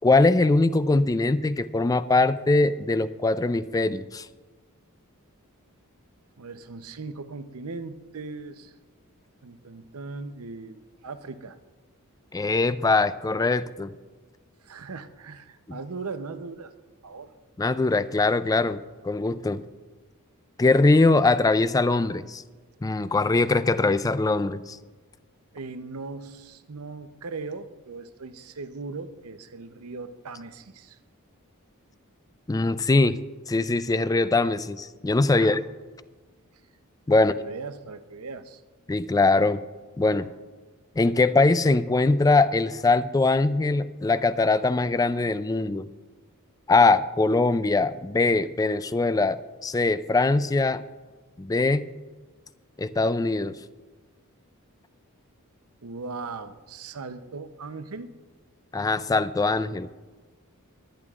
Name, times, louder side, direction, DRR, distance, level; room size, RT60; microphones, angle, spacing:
voice 1, 0.0-4.3 12.3-13.9 17.6-19.6 20.6-22.4 22.8-24.8 32.5-33.2 33.5-35.6 37.1-37.3 38.9-39.6 40.0-40.3 41.0-45.9 46.7-50.8 51.4-51.9 52.8-53.5 58.7-59.9, left 3 dB, 15° left, 14 dB, 0.3 m, -22 dB
voice 2, 6.4-8.7 9.4-11.6 14.6-16.7 17.0-17.3 25.5-31.0 35.3-35.6 37.1-38.6 40.2-40.3 55.8-58.1, right 4 dB, 85° right, 10 dB, 0.7 m, -39 dB
22.0 x 10.5 x 2.4 m, 1.3 s
head